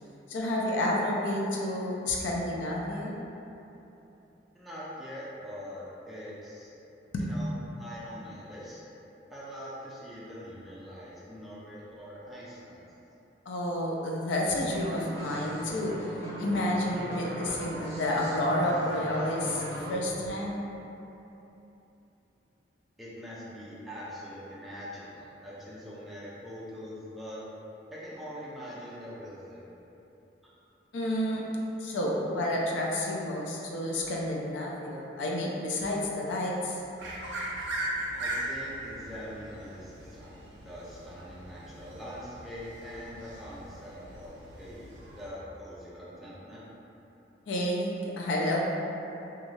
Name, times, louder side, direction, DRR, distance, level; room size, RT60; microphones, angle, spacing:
voice 1, 0.3-3.1 7.1-7.3 13.5-15.9 16.4-20.6 30.9-31.4 31.8-36.8 47.5-48.6, left 1 dB, 90° left, -2 dB, 0.4 m, -30 dB
voice 2, 4.5-6.7 7.2-7.5 7.8-8.8 9.3-12.8 23.0-27.4 27.9-29.7 30.4-30.5 38.2-46.6, equal, ahead, -9 dB, 0.3 m, -43 dB
sound 1, 14.7-19.9, equal, 40° left, 1.4 m, -37 dB
sound 2, 37.0-45.3, right 1 dB, 75° right, 0.4 m, -39 dB
2.5 x 2.3 x 3.0 m, 3.0 s
head